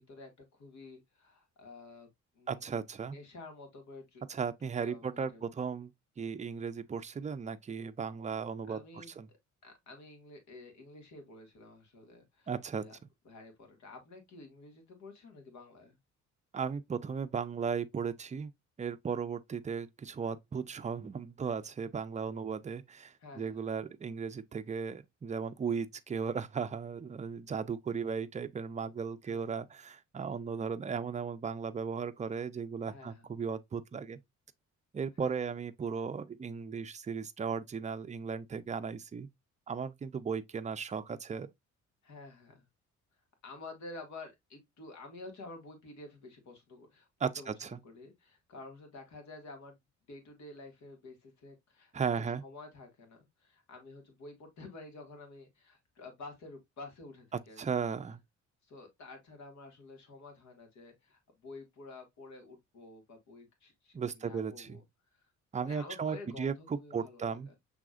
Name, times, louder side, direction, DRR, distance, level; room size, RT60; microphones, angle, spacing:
voice 1, 0.0-2.1 2.4-2.6 3.0-4.2 4.6-5.5 8.7-9.4 9.6-13.0 13.3-16.0 23.2-23.7 29.3-29.5 32.9-33.2 35.2-35.5 42.0-42.6 43.4-47.1 47.4-47.5 47.8-49.8 50.1-57.6 58.7-64.8 65.1-65.2 65.6-67.6, left 3 dB, 70° left, 2.0 m, -50 dB
voice 2, 2.5-3.2 4.3-5.9 6.2-9.3 12.5-12.8 16.5-18.5 18.8-34.2 34.9-39.3 39.7-41.5 47.2-47.8 51.9-52.4 57.6-58.2 63.9-64.8 65.5-67.5, right 6 dB, 25° right, 0.5 m, -36 dB
6.1 x 3.4 x 2.4 m
cardioid pair, 90°, 30 cm